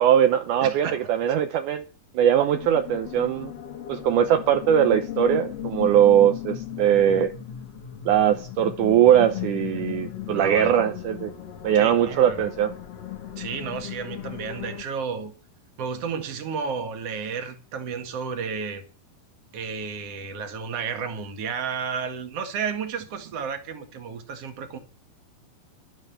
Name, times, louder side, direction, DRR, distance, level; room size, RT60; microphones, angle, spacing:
voice 1, 0.0-1.9 2.1-3.5 3.9-7.3 8.1-11.3 11.6-12.7, right 10 dB, 75° right, 1.9 m, -20 dB
voice 2, 0.6-1.1 10.3-10.8 11.7-12.5 13.4-15.3 15.8-18.8 19.5-24.8, right 6 dB, 50° right, 2.3 m, -32 dB
sound 1, 2.5-14.8, left 11 dB, 55° left, 1.9 m, -36 dB
11.5 x 9.4 x 7.0 m
omnidirectional pair, 4.5 m